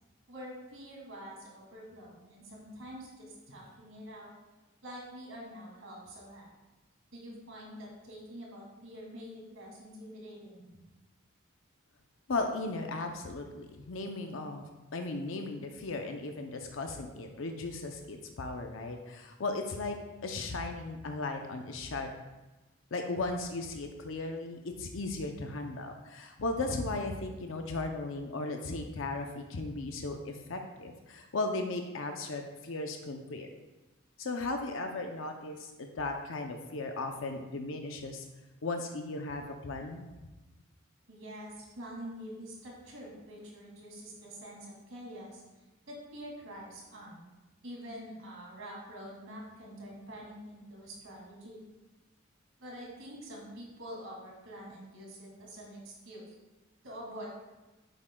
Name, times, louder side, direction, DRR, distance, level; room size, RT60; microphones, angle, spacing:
voice 1, 0.3-4.3 4.8-6.5 7.1-10.8 41.1-45.4 45.9-47.2 47.6-51.6 52.6-56.3 56.8-57.3, equal, 75° right, -3 dB, 2.4 m, -46 dB
voice 2, 12.3-14.6 14.9-20.0 20.2-22.1 22.9-33.5 34.2-38.2 38.6-40.0, left 2 dB, 65° left, 4 dB, 0.6 m, -36 dB
9.3 x 7.3 x 2.3 m, 1.1 s
head